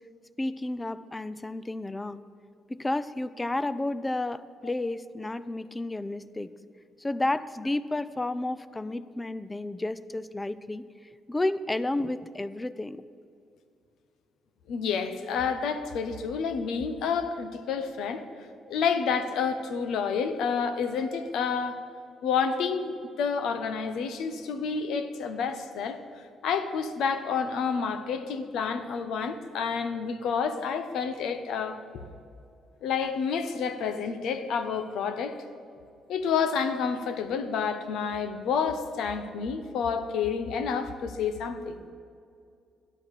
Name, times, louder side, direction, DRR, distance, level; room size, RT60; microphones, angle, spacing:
voice 1, 0.4-2.2 2.7-6.5 7.0-10.9 11.3-13.0, left 2 dB, 15° left, 15 dB, 0.5 m, -31 dB
voice 2, 14.7-18.2 18.7-21.8 22.2-26.0 26.4-31.8 32.8-35.4 36.1-41.8, left 6 dB, 80° left, 9 dB, 0.9 m, -29 dB
12.5 x 11.5 x 4.9 m, 2.4 s
cardioid pair, 90°, 0 cm